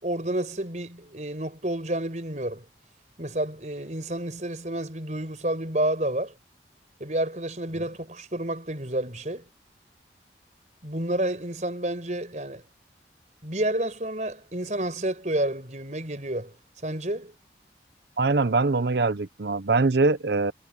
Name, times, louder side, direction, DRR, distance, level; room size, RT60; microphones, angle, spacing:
voice 1, 0.0-2.6 3.2-6.3 7.0-9.4 10.8-12.6 13.4-16.5 16.8-17.3, right 1 dB, 40° right, 5.4 m, -30 dB
voice 2, 18.2-20.5, right 3 dB, 75° right, 0.8 m, -23 dB
head